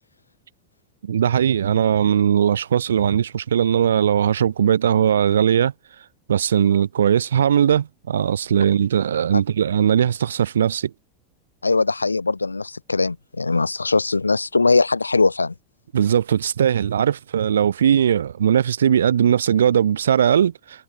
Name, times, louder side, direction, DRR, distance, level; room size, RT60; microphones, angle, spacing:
voice 1, 1.0-5.7 6.3-10.9 15.9-20.8, right 9 dB, 75° right, 0.8 m, -19 dB
voice 2, 11.6-15.5, left 3 dB, 90° left, 0.8 m, -20 dB
figure-of-eight pair, 85°, 0 cm